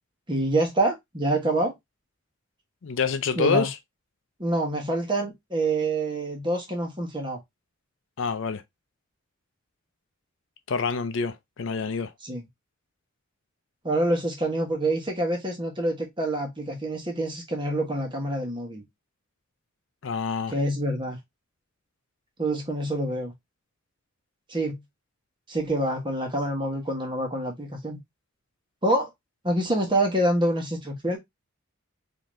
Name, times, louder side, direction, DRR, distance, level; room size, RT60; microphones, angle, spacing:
voice 1, 0.3-1.7 3.3-3.7 4.4-7.4 12.2-12.4 13.8-18.8 20.5-21.2 22.4-23.3 24.5-24.8 25.5-28.0 28.8-29.1 29.4-31.2, right 1 dB, 20° right, 1.1 m, -26 dB
voice 2, 2.8-3.8 8.2-8.6 10.7-12.1 20.0-20.5, left 5 dB, 60° left, 0.5 m, -27 dB
3.8 x 2.8 x 3.0 m
head